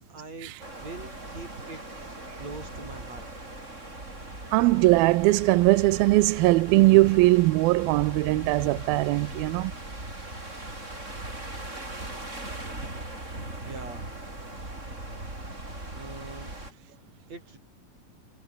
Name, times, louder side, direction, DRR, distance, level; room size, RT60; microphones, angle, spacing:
voice 1, 0.1-1.8 2.4-3.2 13.6-14.1 15.9-16.5 17.3-17.6, right 3 dB, 45° right, 8.7 m, -42 dB
sound 1, 0.6-16.7, right 2 dB, 20° right, 6.6 m, -39 dB
voice 2, 4.5-9.7, right 20 dB, 90° right, 2.5 m, -20 dB
omnidirectional pair, 4.2 m